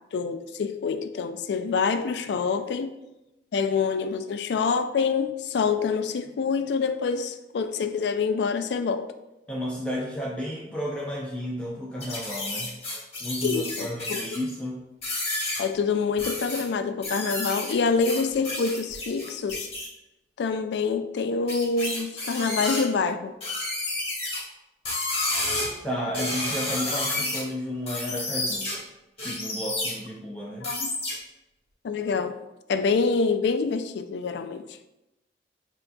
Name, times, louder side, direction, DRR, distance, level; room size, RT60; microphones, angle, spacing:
voice 1, 0.1-2.9 3.5-9.1 13.4-14.2 15.6-19.7 20.4-23.3 30.6-30.9 31.8-32.4 32.7-34.8, left 5 dB, 70° left, 9 dB, 0.3 m, -26 dB
voice 2, 9.5-12.8 13.2-14.8 25.8-28.7 29.2-30.7, equal, 5° left, -5 dB, 0.5 m, -32 dB
sound 1, 12.0-14.5 15.0-15.6 16.2-16.6 17.0-19.9 21.5-22.8 23.4-24.4 24.8-25.7 26.1-27.4 27.9-28.7 29.2-29.9 30.6-31.1, left 2 dB, 35° left, 1.4 m, -30 dB
7.6 x 2.7 x 2.3 m, 0.96 s
head